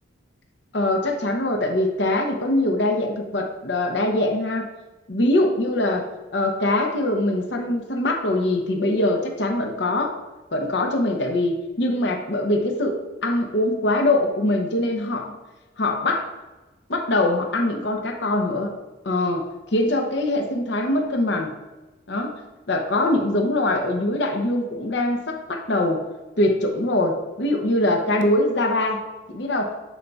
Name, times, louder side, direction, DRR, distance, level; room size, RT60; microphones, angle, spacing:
voice 1, 0.7-4.7 5.1-6.1 6.3-10.2 10.5-15.4 15.8-16.2 16.9-18.7 19.0-21.6 22.1-22.4 22.7-26.1 26.4-29.0 29.3-29.7, left 1 dB, 60° left, 3 dB, 0.7 m, -23 dB
10.0 x 4.0 x 2.4 m, 1.1 s
head